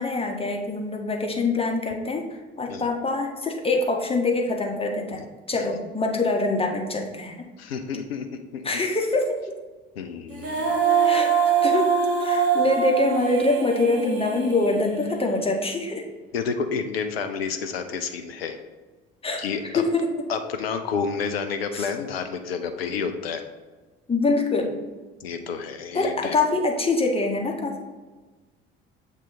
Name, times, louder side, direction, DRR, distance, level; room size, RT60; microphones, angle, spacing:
voice 1, 0.0-2.3 2.6-5.2 5.5-7.4 8.6-9.4 11.0-11.3 11.6-11.9 12.2-16.0 19.2-19.4 19.7-20.2 21.7-21.9 24.1-24.7 25.9-27.8, left 2 dB, 20° left, 2 dB, 1.2 m, -24 dB
voice 2, 7.6-8.7 10.0-10.8 16.3-18.6 19.4-19.8 20.3-23.4 25.2-26.4, left 5 dB, 75° left, 8 dB, 0.5 m, -30 dB
Female singing, 10.3-15.5, right 7 dB, 45° right, 1.3 m, -24 dB
7.5 x 3.6 x 4.1 m, 1.3 s
figure-of-eight pair, 55°, 30 cm